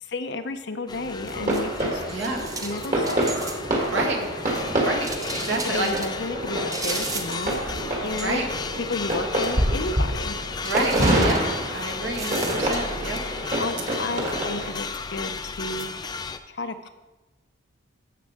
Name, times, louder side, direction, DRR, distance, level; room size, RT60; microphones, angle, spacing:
voice 1, 0.0-2.0 2.6-3.3 5.5-7.6 8.0-8.5 8.8-10.4 13.6-15.9 16.5-16.9, left 2 dB, 60° left, 10 dB, 0.7 m, -32 dB
sound 1, 0.9-16.4, left 4 dB, 20° left, 0.4 m, -34 dB
sound 2, 1.0-3.9 4.2-6.1 6.7-7.8 8.1-8.6 8.9-9.1 9.4-9.5 10.6-13.2 13.5-14.7 15.3-15.8, right 3 dB, 20° right, 0.7 m, -37 dB
sound 3, 1.3-14.7, right 1 dB, 40° right, 1.7 m, -27 dB
voice 2, 2.1-2.4 3.9-4.2 4.8-5.9 8.2-8.5 10.6-13.2, right 2 dB, 70° right, 1 dB, 1.8 m, -29 dB
14.5 x 6.6 x 3.6 m, 1.1 s
head